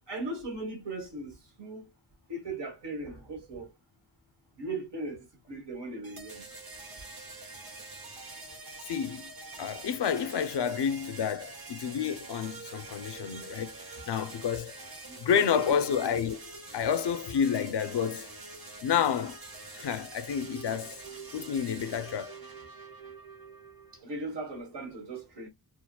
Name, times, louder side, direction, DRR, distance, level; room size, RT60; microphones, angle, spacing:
voice 1, 0.1-1.9 2.3-3.7 4.6-6.4 15.0-16.0 24.0-25.5, right 2 dB, 90° right, 1.6 m, -38 dB
sound 1, 6.0-24.0, right 3 dB, 60° right, 1.6 m, -45 dB
voice 2, 8.9-9.3 9.6-13.8 14.1-14.7 15.2-16.4 16.7-18.3 18.8-19.4 19.7-21.0 21.3-22.4, left 8 dB, 80° left, 0.6 m, -29 dB
4.4 x 2.1 x 2.2 m
wide cardioid pair, 100°, 41 cm